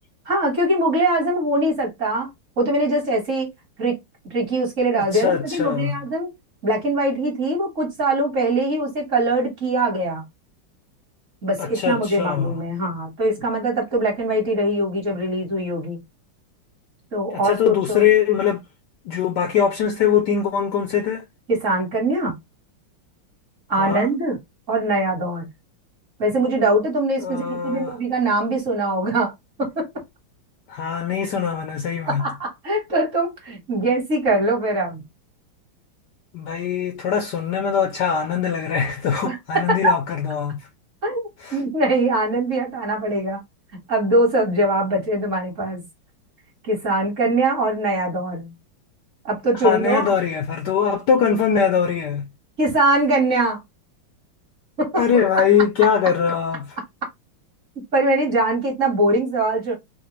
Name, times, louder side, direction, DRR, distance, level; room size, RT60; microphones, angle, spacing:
voice 1, 0.3-2.3 2.6-3.5 3.8-4.0 4.3-6.3 6.6-10.2 11.4-16.0 17.1-18.0 21.5-22.3 23.7-24.4 24.7-25.5 26.2-29.3 29.6-29.9 32.0-35.0 39.2-39.9 41.0-43.4 43.9-45.8 46.7-48.5 49.2-50.1 52.6-53.6 54.8-55.0 57.9-59.7, right 1 dB, 40° right, 1.5 m, -22 dB
voice 2, 5.0-6.0 11.6-12.5 17.3-18.6 19.1-21.2 23.7-24.1 27.2-28.0 30.7-32.2 36.3-40.7 41.4-41.6 49.6-52.3 55.0-56.8, left 7 dB, 70° left, 1.0 m, -22 dB
4.1 x 2.3 x 3.0 m
omnidirectional pair, 2.3 m